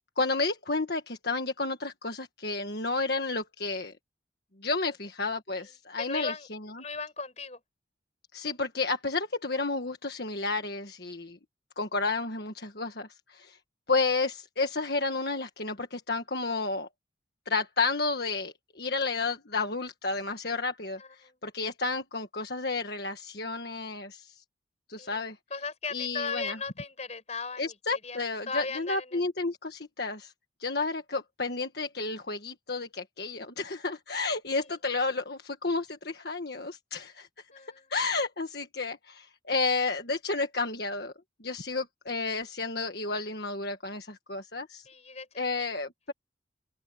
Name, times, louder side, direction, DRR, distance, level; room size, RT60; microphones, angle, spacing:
voice 1, 0.2-3.9 4.6-6.3 8.3-11.4 11.8-13.6 13.9-16.9 17.4-24.4 24.9-25.4 25.9-26.6 27.6-30.3 30.6-37.3 37.9-41.1 41.4-44.9 45.4-46.1, left 3 dB, 55° left, 1.6 m, -31 dB
voice 2, 6.0-6.5 6.8-7.6 21.0-21.4 25.0-25.2 25.5-28.2 28.5-29.2 34.6-34.7 37.5-37.9 44.8-45.7, left 4 dB, 35° left, 6.0 m, -37 dB
open air
head